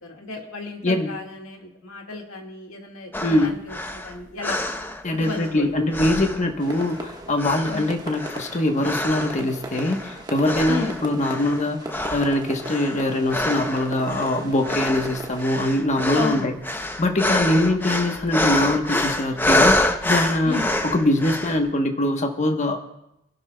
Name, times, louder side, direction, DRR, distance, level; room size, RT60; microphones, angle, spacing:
voice 1, 0.0-4.6 5.1-5.9 7.7-7.9 10.7-11.0 16.1-16.5 17.4-17.7 20.4-20.7, left 3 dB, 75° left, 2 dB, 1.9 m, -33 dB
sound 1, 3.1-5.6 5.9-7.0 7.4-9.4 9.7-10.1 10.4-11.6 11.9-21.6, left 1 dB, 10° left, 0.6 m, -26 dB
voice 2, 3.2-3.6 5.0-16.5 17.0-22.9, left 1 dB, 35° left, 5 dB, 1.1 m, -23 dB
sound 2, 6.6-15.5, right 1 dB, 20° right, 1.3 m, -37 dB
27.0 x 11.5 x 2.2 m, 0.84 s
head